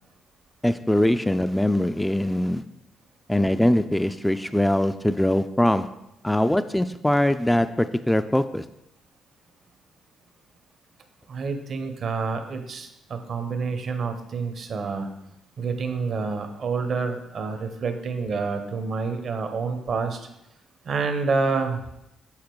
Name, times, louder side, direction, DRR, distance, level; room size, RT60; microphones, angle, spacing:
voice 1, 0.6-2.6 3.3-8.7, left 1 dB, 5° left, 10 dB, 0.3 m, -22 dB
voice 2, 11.3-15.1 15.6-20.3 20.8-21.8, right 4 dB, 55° right, 7 dB, 0.9 m, -28 dB
7.3 x 4.2 x 4.6 m, 0.85 s
supercardioid pair, 70°, 0 cm